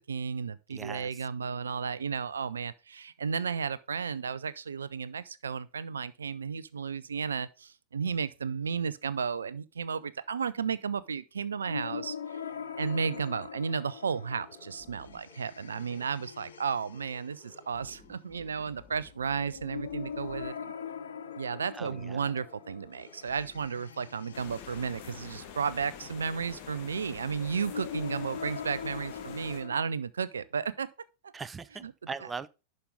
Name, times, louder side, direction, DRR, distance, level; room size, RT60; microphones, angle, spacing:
voice 1, 0.1-12.4 12.8-20.7 21.4-30.9 31.8-31.9, right 6 dB, 70° right, 0.5 m, -33 dB
voice 2, 0.7-1.2 21.7-22.3 31.3-32.5, right 5 dB, 15° right, 0.4 m, -40 dB
sound 1, 11.7-29.8, left 7 dB, 65° left, 0.9 m, -43 dB
sound 2, 12.3-12.4 12.8-13.3 13.5-13.7 14.0-15.4 15.7-16.2 16.5-16.6 16.9-20.5 20.8-20.9 21.2-21.7 22.0-22.1 22.4-23.7, left 4 dB, 5° left, 1.3 m, -58 dB
sound 3, 24.3-29.6, left 8 dB, 45° left, 2.1 m, -46 dB
11.0 x 5.3 x 3.7 m
figure-of-eight pair, 90°, 0 cm